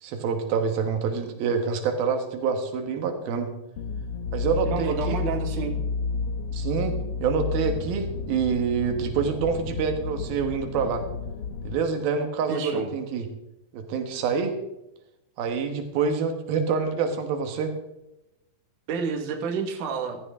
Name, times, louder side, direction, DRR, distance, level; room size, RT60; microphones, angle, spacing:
voice 1, 0.0-3.5 4.3-5.2 6.5-11.0 11.6-13.3 13.7-14.5 15.4-17.7, right 5 dB, 85° right, 6 dB, 3.2 m, -26 dB
sound 1, 3.8-11.8, left 4 dB, 65° left, 1.5 m, -31 dB
voice 2, 4.6-5.8 12.5-12.9 18.9-20.2, right 5 dB, 65° right, 3 dB, 3.0 m, -29 dB
15.5 x 14.0 x 3.6 m, 0.92 s
omnidirectional pair, 4.2 m